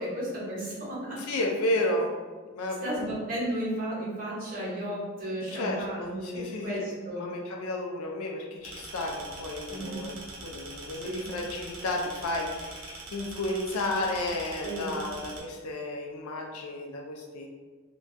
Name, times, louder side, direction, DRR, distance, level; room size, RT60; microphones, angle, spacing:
voice 1, 0.0-1.2 2.8-7.3 9.7-10.0 11.0-11.3 14.6-14.9, equal, 40° right, -6 dB, 0.7 m, -34 dB
voice 2, 1.2-2.1 2.5-2.9 5.5-6.9 7.2-10.1 10.4-17.5, left 1 dB, 80° left, 1 dB, 0.4 m, -32 dB
sound 1, 8.6-15.4, right 3 dB, 75° right, 0.5 m, -43 dB
2.2 x 2.2 x 2.5 m, 1.4 s
head